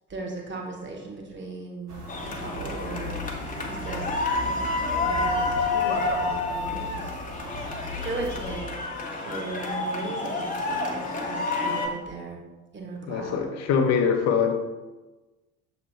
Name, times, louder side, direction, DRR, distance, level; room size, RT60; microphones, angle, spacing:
voice 1, 0.1-3.2 3.7-4.6 4.9-7.2 7.9-8.8 9.1-12.4 12.7-13.4, right 3 dB, 25° right, 0 dB, 1.5 m, -37 dB
sound 1, 1.9-8.6, left 2 dB, 85° right, 1.0 m, -38 dB
sound 2, 2.1-11.9, left 3 dB, 20° left, 1.1 m, -29 dB
voice 2, 13.0-14.5, left 6 dB, 35° left, 5 dB, 0.9 m, -23 dB
7.2 x 3.3 x 4.4 m, 1.2 s
figure-of-eight pair, 60°, 45 cm